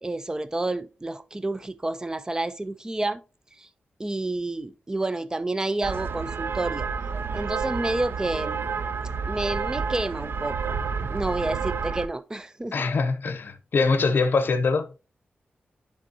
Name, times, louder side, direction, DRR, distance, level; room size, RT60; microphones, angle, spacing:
voice 1, 0.0-3.2 3.6-3.7 4.0-6.9 7.3-8.7 9.3-10.8 11.1-12.9, right 2 dB, 20° right, 0.5 m, -29 dB
sound 1, 5.8-12.1, right 5 dB, 75° right, 0.4 m, -30 dB
voice 2, 12.7-14.9, left 4 dB, 65° left, 0.7 m, -23 dB
10.5 x 3.6 x 2.7 m
wide cardioid pair, 90°, 4 cm